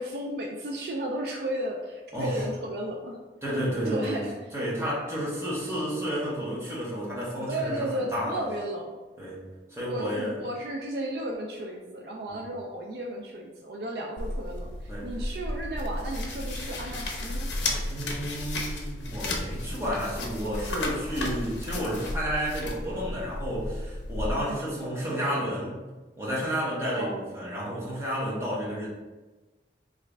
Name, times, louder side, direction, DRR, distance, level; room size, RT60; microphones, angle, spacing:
voice 1, 0.0-3.2 3.8-4.3 7.5-9.0 9.8-17.5 24.3-24.6 25.1-25.4 26.9-27.3, right 1 dB, 60° right, 0 dB, 0.4 m, -34 dB
voice 2, 2.1-2.4 3.4-4.2 4.5-8.4 9.2-9.4 9.7-10.4 14.9-15.1 17.9-25.8 26.2-28.9, equal, 15° right, -8 dB, 0.9 m, -31 dB
sound 1, 14.2-24.3, left 1 dB, 85° left, 0.5 m, -33 dB
3.2 x 2.5 x 3.2 m, 1.2 s
head